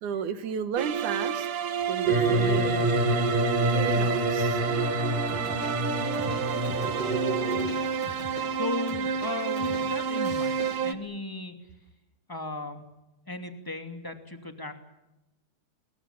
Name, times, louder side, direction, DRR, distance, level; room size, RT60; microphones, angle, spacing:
voice 1, 0.0-1.5 1.9-2.9 3.7-4.6, right 8 dB, 80° right, 11 dB, 2.9 m, -32 dB
sound 1, 0.8-10.9, right 7 dB, 55° right, 1.7 m, -30 dB
sound 2, 2.1-7.6, right 1 dB, 15° right, 3.0 m, -27 dB
sound 3, 5.3-10.8, left 3 dB, 75° left, 6.8 m, -43 dB
voice 2, 8.6-11.5 12.3-12.8 13.3-14.7, left 3 dB, 10° left, 5 dB, 2.1 m, -36 dB
28.5 x 22.0 x 7.2 m, 0.95 s
omnidirectional pair, 3.5 m